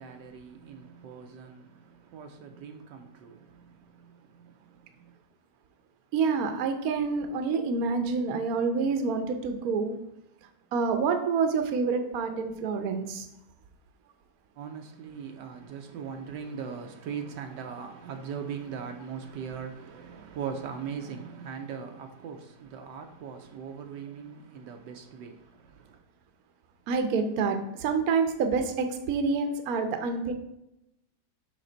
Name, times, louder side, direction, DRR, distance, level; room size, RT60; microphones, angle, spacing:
voice 1, 0.0-5.1 14.6-26.0, right 6 dB, 80° right, 1.3 m, -40 dB
voice 2, 6.1-10.0 10.7-13.3 26.9-30.3, right 4 dB, 60° right, 1.2 m, -27 dB
6.6 x 5.7 x 3.9 m
omnidirectional pair, 1.9 m